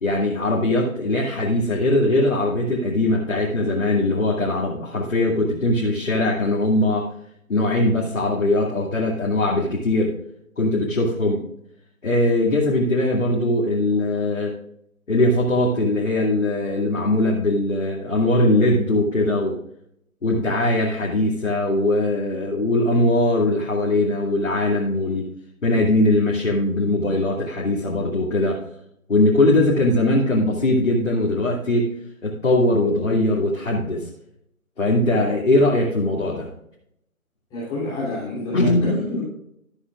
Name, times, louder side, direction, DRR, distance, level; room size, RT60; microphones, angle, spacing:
voice 1, 0.0-7.1 7.5-10.1 10.6-11.4 12.0-14.5 15.1-19.6 20.2-25.3 25.6-28.6 29.1-31.9 32.2-34.1 34.8-36.5 38.5-38.9, left 1 dB, 60° left, -3 dB, 2.5 m, -20 dB
voice 2, 37.5-39.2, left 2 dB, 10° left, -9 dB, 3.1 m, -27 dB
13.0 x 9.6 x 2.4 m, 0.75 s
figure-of-eight pair, 155°, 42 cm